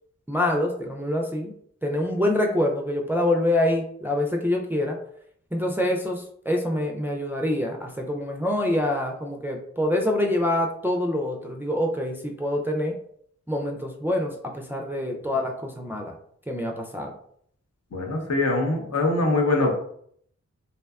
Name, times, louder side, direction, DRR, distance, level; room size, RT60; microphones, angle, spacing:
voice 1, 0.3-1.5 1.8-5.0 5.5-13.0 13.5-16.1 16.5-17.1, left 1 dB, 5° right, 1 dB, 0.3 m, -26 dB
voice 2, 17.9-19.7, left 2 dB, 60° left, 1 dB, 0.7 m, -23 dB
2.7 x 2.2 x 2.3 m, 0.66 s
cardioid pair, 45°, 29 cm